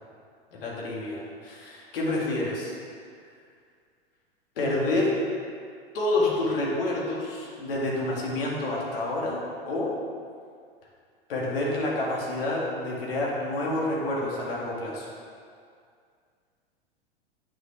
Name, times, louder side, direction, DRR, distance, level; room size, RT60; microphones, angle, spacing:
voice 1, 0.5-2.7 4.6-5.1 5.9-9.4 9.6-9.9 11.3-15.1, left 2 dB, 65° left, -4 dB, 2.1 m, -28 dB
8.9 x 6.5 x 3.3 m, 2.2 s
figure-of-eight pair, 95°, 31 cm